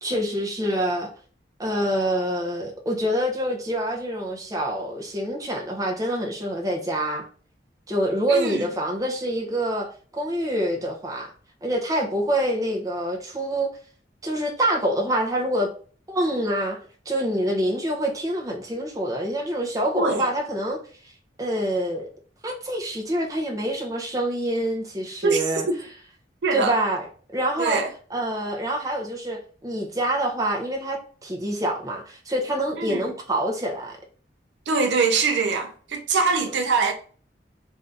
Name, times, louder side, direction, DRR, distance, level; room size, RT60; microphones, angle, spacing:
voice 1, 0.0-1.1 1.6-7.3 7.9-11.3 11.6-13.7 14.2-15.7 16.1-16.8 17.1-21.1 21.4-22.1 22.4-25.7 26.5-27.1 27.3-27.8 28.1-34.0, right 1 dB, 20° right, 0.7 m, -26 dB
voice 2, 8.3-8.6 19.9-20.2 25.2-25.4 25.7-25.8 26.4-26.7 27.6-27.9 32.8-33.0 34.7-36.9, right 4 dB, 75° right, 0.5 m, -23 dB
2.7 x 2.5 x 3.4 m
head